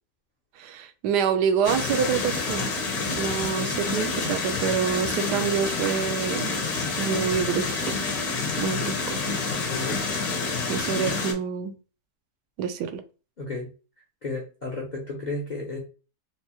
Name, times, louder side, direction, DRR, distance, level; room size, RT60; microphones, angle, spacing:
voice 1, 0.6-2.7 3.2-6.5 7.0-8.0 8.6-9.2 10.7-11.8 12.6-13.0, right 7 dB, 75° right, 1.1 m, -27 dB
sound 1, 1.6-11.3, left 4 dB, 65° left, 1.3 m, -28 dB
voice 2, 9.7-10.0 13.4-13.7 14.2-15.8, left 2 dB, 50° left, 0.5 m, -32 dB
4.5 x 2.0 x 2.9 m
omnidirectional pair, 1.8 m